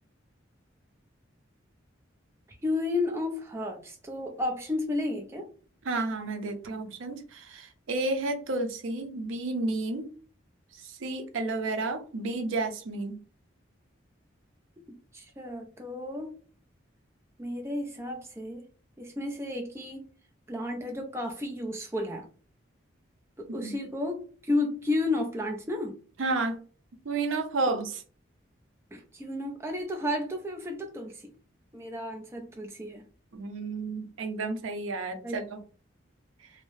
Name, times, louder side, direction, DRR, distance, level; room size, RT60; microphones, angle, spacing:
voice 1, 2.6-5.5 14.9-16.4 17.4-18.6 19.0-20.0 20.5-22.3 23.4-26.0 27.7-27.8 28.9-31.3 31.7-33.0 35.2-35.4, left 2 dB, 15° right, 2 dB, 0.4 m, -32 dB
voice 2, 5.8-10.1 10.7-13.2 23.6-23.8 26.2-26.6 27.0-28.0 33.3-35.6 36.4-36.5, right 3 dB, 90° right, 7 dB, 0.5 m, -31 dB
2.7 x 2.0 x 3.0 m, 0.39 s
head